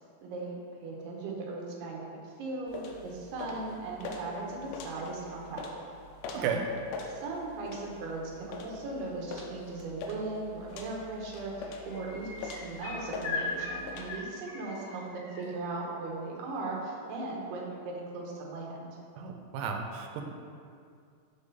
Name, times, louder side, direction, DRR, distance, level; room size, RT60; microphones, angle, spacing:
voice 1, 0.2-5.6 6.3-6.5 7.0-19.0, right 2 dB, 75° right, -2 dB, 2.7 m, -38 dB
sound 1, 2.7-14.1, left 3 dB, 90° left, 2.3 m, -44 dB
voice 2, 6.3-6.7 19.2-20.3, right 6 dB, 90° right, 3 dB, 3.0 m, -33 dB
sound 2, 10.7-11.1 11.4-15.4 17.1-17.2, left 3 dB, 60° left, 2.3 m, -40 dB
6.6 x 3.6 x 5.4 m, 2.3 s
omnidirectional pair, 5.3 m